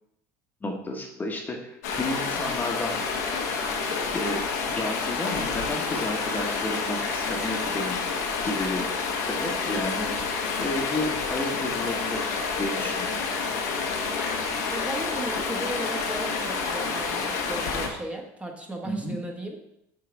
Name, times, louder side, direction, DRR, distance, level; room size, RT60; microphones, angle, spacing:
voice 1, 0.6-3.0 4.1-10.1 10.6-13.3 18.8-19.2, left 2 dB, 20° left, 1 dB, 1.1 m, -32 dB
Stream, 1.8-17.9, left 4 dB, 90° left, 1.1 m, -29 dB
voice 2, 14.7-19.6, right 1 dB, 15° right, 1 dB, 1.2 m, -36 dB
6.7 x 3.8 x 5.1 m, 0.81 s
supercardioid pair, 95°, 8 cm